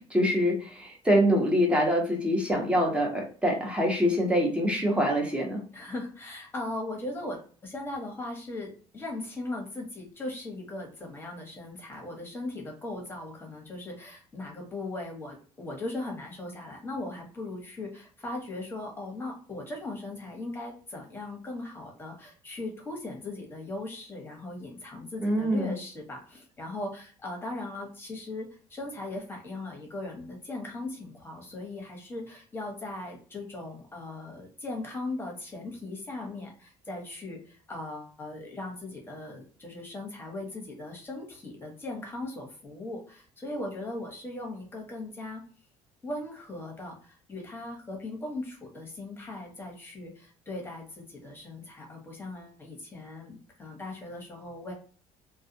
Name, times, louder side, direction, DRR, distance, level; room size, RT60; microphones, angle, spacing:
voice 1, 0.1-5.6 25.2-25.7, equal, 10° right, 0 dB, 0.9 m, -25 dB
voice 2, 5.7-45.4 46.0-54.7, left 2 dB, 20° left, 0 dB, 1.1 m, -38 dB
2.3 x 2.2 x 2.8 m, 0.41 s
cardioid pair, 120°, 12 cm